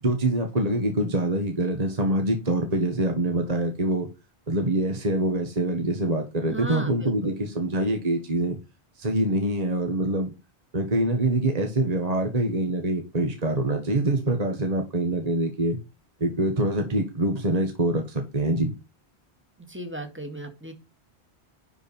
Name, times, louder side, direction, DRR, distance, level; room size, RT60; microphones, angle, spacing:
voice 1, 0.0-4.1 4.5-8.6 9.0-10.3 10.7-15.8 16.2-18.7, right 1 dB, 35° right, 1.5 m, -25 dB
voice 2, 6.5-7.4 19.6-20.7, right 2 dB, 10° right, 1.9 m, -35 dB
11.0 x 4.5 x 5.4 m
omnidirectional pair, 1.1 m